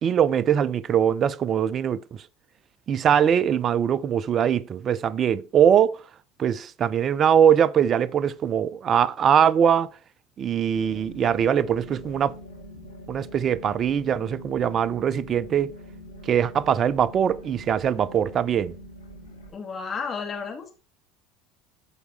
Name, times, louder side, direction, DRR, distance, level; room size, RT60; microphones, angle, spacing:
voice 1, 0.0-2.2 2.9-6.0 6.4-9.9 10.4-12.4 13.1-15.7 16.3-18.7, right 8 dB, 35° right, 0.4 m, -22 dB
sound 1, 10.7-19.5, equal, 80° left, 1.8 m, -44 dB
voice 2, 19.5-20.7, left 5 dB, 30° left, 2.0 m, -32 dB
13.5 x 4.7 x 3.2 m
figure-of-eight pair, 70°, 0 cm